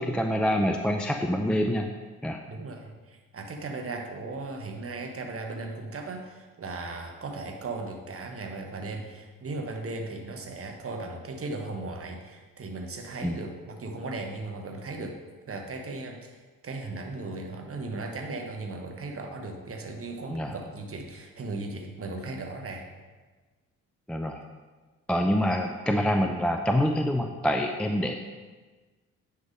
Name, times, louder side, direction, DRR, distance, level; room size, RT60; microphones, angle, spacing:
voice 1, 0.0-1.9 2.2-2.4 13.2-13.3 20.3-20.5 24.1-24.4 25.1-28.1, equal, ahead, 4 dB, 0.3 m, -26 dB
voice 2, 2.5-15.2 15.5-16.4 16.6-22.8, right 3 dB, 35° right, 3 dB, 1.2 m, -37 dB
9.5 x 3.5 x 5.1 m, 1.3 s
figure-of-eight pair, 40°, 42 cm